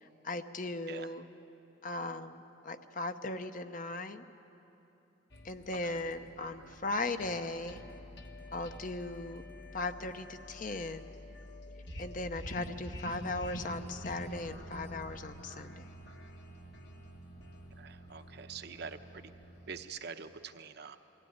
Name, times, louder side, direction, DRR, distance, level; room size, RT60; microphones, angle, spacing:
voice 1, 0.0-1.3 1.8-4.2 5.4-7.8 8.5-9.4 9.7-11.1 12.0-15.9, left 2 dB, 45° left, 9 dB, 0.8 m, -38 dB
sound 1, 5.3-19.8, equal, 60° left, 1.6 m, -47 dB
voice 2, 17.8-19.3 19.7-21.0, right 5 dB, 60° right, 7 dB, 0.9 m, -45 dB
22.5 x 15.5 x 9.6 m, 3.0 s
head